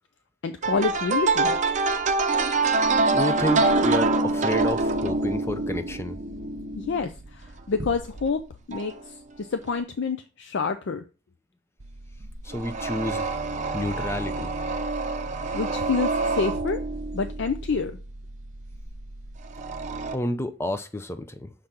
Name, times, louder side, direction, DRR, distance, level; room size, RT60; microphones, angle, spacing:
voice 1, 0.4-1.6 6.8-8.4 8.7-11.0 15.5-16.8 17.1-18.0, left 5 dB, 65° left, 0.5 m, -28 dB
sound 1, 0.6-8.3 8.7-9.0 9.7-9.8 11.8-20.2, right 3 dB, 40° right, 0.6 m, -26 dB
voice 2, 3.1-6.2 12.4-13.3 13.7-14.5 20.1-21.5, left 1 dB, 15° left, 0.5 m, -30 dB
6.5 x 3.7 x 4.3 m
head